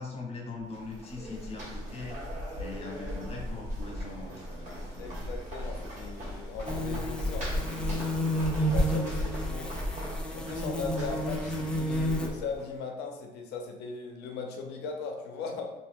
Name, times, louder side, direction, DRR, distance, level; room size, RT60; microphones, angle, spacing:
voice 1, 0.0-2.2 2.6-5.2, left 3 dB, 40° left, -1 dB, 0.8 m, -41 dB
sound 1, 0.6-12.7, equal, 45° right, 1.4 m, -36 dB
voice 2, 5.0-9.7 10.3-15.7, left 4 dB, 80° left, 2 dB, 0.6 m, -39 dB
sound 2, 6.7-12.3, equal, 5° left, 0.3 m, -31 dB
2.6 x 2.2 x 3.5 m, 0.98 s
cardioid pair, 110°, 17 cm